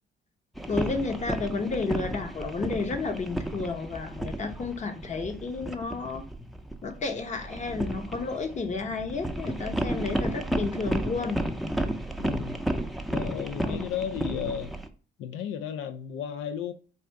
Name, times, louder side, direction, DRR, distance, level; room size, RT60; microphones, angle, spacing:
sound 1, 0.5-14.9, right 1 dB, ahead, 0.5 m, -33 dB
voice 1, 0.7-6.2 6.8-11.4 13.6-13.9, left 4 dB, 35° left, 0.9 m, -32 dB
voice 2, 12.2-12.5 13.1-14.7 15.2-16.7, left 8 dB, 85° left, 0.4 m, -33 dB
4.2 x 2.5 x 4.5 m
cardioid pair, 90°, 20 cm